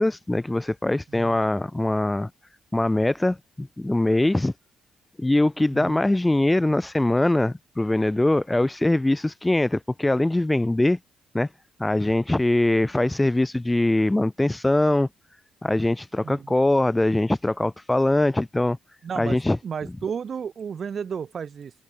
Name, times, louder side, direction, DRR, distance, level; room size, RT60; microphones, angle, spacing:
voice 1, 0.0-2.3 2.7-4.5 5.2-11.0 11.3-11.5 11.8-15.1 15.6-18.8 19.2-19.6, left 1 dB, 10° left, 4.4 m, -22 dB
voice 2, 5.7-6.0 16.2-16.5 19.0-21.7, right 7 dB, 50° right, 3.4 m, -33 dB
cardioid pair, 90°, 0 cm